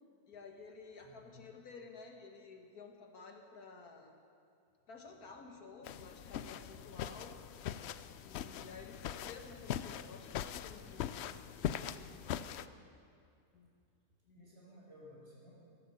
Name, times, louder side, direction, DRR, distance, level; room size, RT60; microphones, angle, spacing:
voice 1, 0.3-4.1 4.9-7.4 8.2-12.6 13.5-13.7 14.3-14.4, left 4 dB, 85° left, 3 dB, 2.0 m, -53 dB
voice 2, 1.0-1.5 5.1-6.1 13.6-13.7 14.3-15.5, left 1 dB, 45° right, -5 dB, 5.6 m, -59 dB
sound 1, 5.8-12.7, left 10 dB, 65° left, 0.6 m, -42 dB
15.0 x 11.5 x 7.7 m, 2.4 s
omnidirectional pair, 1.5 m